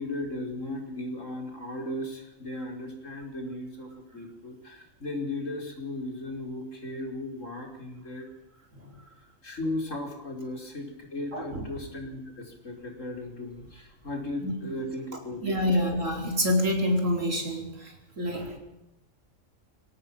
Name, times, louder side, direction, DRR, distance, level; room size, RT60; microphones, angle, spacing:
voice 1, 0.0-8.3 9.4-15.8, left 1 dB, 85° left, 2 dB, 5.4 m, -36 dB
voice 2, 11.3-11.6 14.4-14.8 15.4-18.6, left 1 dB, 90° right, 2 dB, 5.0 m, -27 dB
24.0 x 17.5 x 7.7 m, 0.91 s
omnidirectional pair, 1.3 m